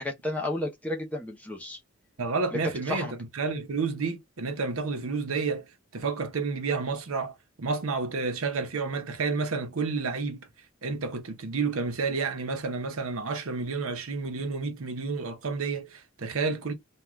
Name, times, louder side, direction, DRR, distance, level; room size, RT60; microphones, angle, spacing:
voice 1, 0.0-1.8 2.5-2.6 2.9-3.1, left 1 dB, 5° left, 0.6 m, -32 dB
voice 2, 2.2-5.7 5.9-10.5 10.8-16.7, right 4 dB, 75° right, 0.8 m, -30 dB
2.4 x 2.3 x 3.1 m
head